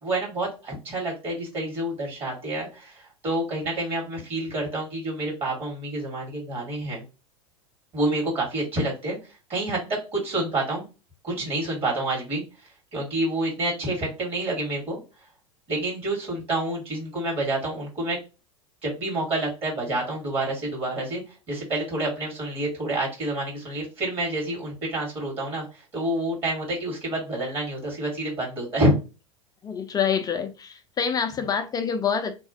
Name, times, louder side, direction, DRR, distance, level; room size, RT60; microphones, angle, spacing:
voice 1, 0.0-7.0 7.9-9.2 9.5-9.8 10.1-10.8 11.2-12.4 12.9-15.0 15.7-18.2 18.8-21.2 21.5-28.9, right 1 dB, 35° right, 1.7 m, -28 dB
voice 2, 29.6-32.4, left 7 dB, 20° left, 0.4 m, -26 dB
2.9 x 2.3 x 2.7 m
hypercardioid pair, 85°, 17 cm